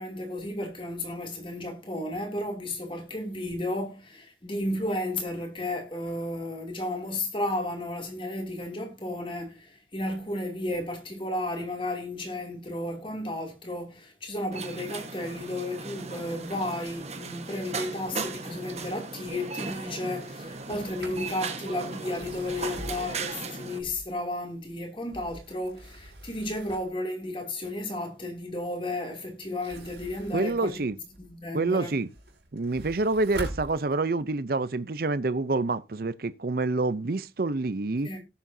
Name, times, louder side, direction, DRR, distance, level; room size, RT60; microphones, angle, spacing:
voice 1, 0.0-30.8 31.2-32.0 38.0-38.2, left 1 dB, 30° left, 2.7 m, -33 dB
sound 1, 14.5-23.8, right 4 dB, 35° right, 1.3 m, -37 dB
Sliding door, 20.5-21.3 22.0-24.3 24.9-27.0 29.4-31.4 31.8-34.3, right 1 dB, 70° right, 5.2 m, -43 dB
voice 2, 30.3-30.9 31.5-32.1 32.5-38.1, right 3 dB, 50° right, 0.6 m, -27 dB
18.0 x 7.4 x 2.7 m
head